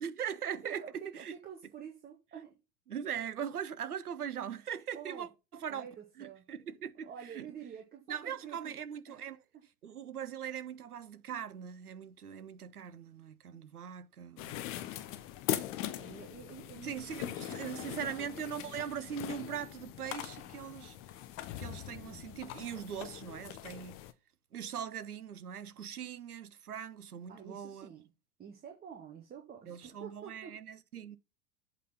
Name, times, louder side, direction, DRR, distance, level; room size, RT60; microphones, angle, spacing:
voice 1, 0.0-1.3 2.9-5.9 6.2-7.5 8.1-9.4 9.8-14.6 16.8-21.0 21.6-24.0 24.5-27.9 29.7-31.2, right 8 dB, 75° right, 0.9 m, -41 dB
voice 2, 0.6-2.6 4.9-5.3 5.7-6.4 7.1-8.8 9.1-9.3 15.5-18.3 18.5-18.7 21.9-22.3 27.3-28.1 28.4-30.6, right 8 dB, 20° right, 1.6 m, -49 dB
sound 1, 14.4-24.1, left 13 dB, 30° left, 0.7 m, -41 dB
8.3 x 4.1 x 5.6 m
figure-of-eight pair, 90°, 46 cm